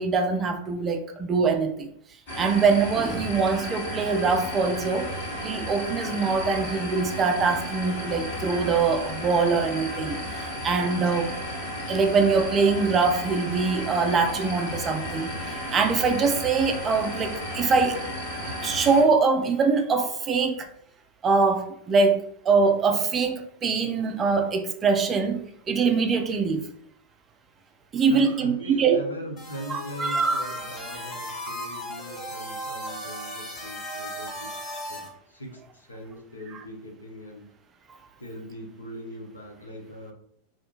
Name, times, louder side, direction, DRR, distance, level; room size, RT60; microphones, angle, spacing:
voice 1, 0.0-1.9 2.4-5.1 5.4-10.2 10.6-11.3 11.9-18.0 18.6-20.7 21.2-26.7 27.9-29.0 29.7-30.6, right 4 dB, 25° right, 0.3 m, -23 dB
sound 1, 2.3-19.0, equal, 45° left, 1.1 m, -33 dB
voice 2, 28.1-34.5 34.9-37.5 38.2-40.1, equal, 80° left, 0.6 m, -40 dB
sound 2, 29.4-35.1, equal, 25° left, 0.7 m, -36 dB
2.4 x 2.2 x 2.9 m
figure-of-eight pair, 90°, 0 cm